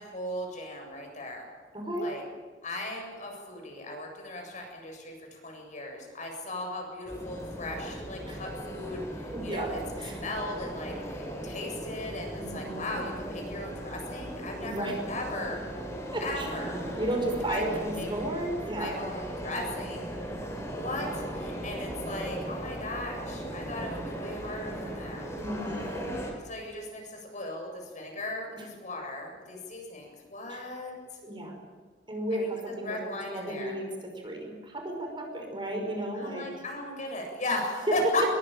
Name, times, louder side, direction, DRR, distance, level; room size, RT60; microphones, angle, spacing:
voice 1, 0.0-1.5 2.0-2.2 2.6-9.8 10.1-15.6 16.2-16.8 17.5-17.6 17.9-18.1 18.8-20.1 20.7-25.3 26.4-30.9 32.3-32.5 32.8-33.8 36.1-38.2, left 2 dB, 45° left, 2 dB, 7.7 m, -37 dB
voice 2, 1.7-2.1 6.2-6.3 8.3-8.4 9.3-9.7 10.0-10.2 12.4-13.0 14.6-15.0 16.1-16.5 17.0-19.0 25.4-26.1 28.5-28.6 30.5-30.6 31.2-31.6 32.1-33.0 33.3-36.5, right 1 dB, 30° right, 2 dB, 5.7 m, -34 dB
sound 1, 7.1-26.3, right 1 dB, 15° left, 6.3 m, -37 dB
24.0 x 22.5 x 9.1 m, 1.4 s
head